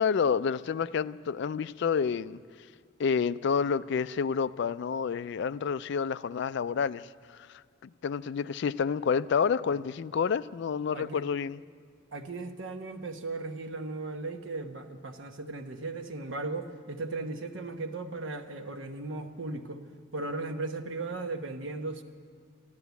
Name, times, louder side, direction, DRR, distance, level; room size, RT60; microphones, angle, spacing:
voice 1, 0.0-2.4 3.0-7.1 7.3-7.5 7.8-11.6, left 6 dB, 60° left, 0.3 m, -29 dB
voice 2, 12.1-19.8 20.1-22.0, right 3 dB, 70° right, 1.1 m, -37 dB
13.5 x 12.0 x 8.2 m
head